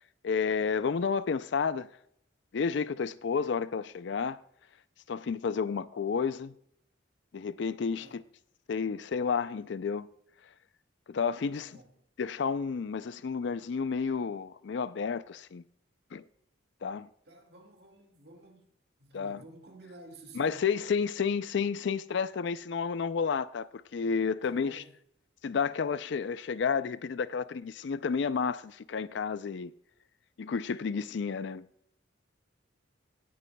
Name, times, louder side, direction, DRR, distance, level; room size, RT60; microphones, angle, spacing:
voice 1, 0.2-1.9 2.5-4.4 5.1-6.5 7.3-8.2 8.7-10.1 11.1-11.7 12.2-15.6 16.1-16.2 16.8-17.1 19.1-19.4 20.4-24.8 25.4-29.7 30.4-31.7, left 5 dB, 65° left, 0.4 m, -31 dB
voice 2, 11.5-12.0 17.3-18.7 19.0-20.6 24.4-24.9, right 2 dB, 55° right, 1.9 m, -52 dB
18.0 x 9.2 x 2.2 m
head